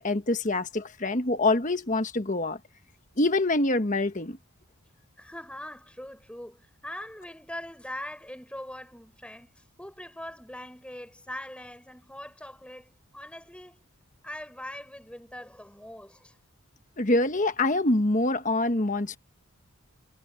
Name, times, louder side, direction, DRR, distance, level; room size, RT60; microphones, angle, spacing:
voice 1, 0.0-2.6 3.2-4.4 17.0-19.2, left 2 dB, 35° left, 1.3 m, -25 dB
voice 2, 5.2-13.8 14.2-16.4, left 1 dB, 5° left, 5.2 m, -42 dB
head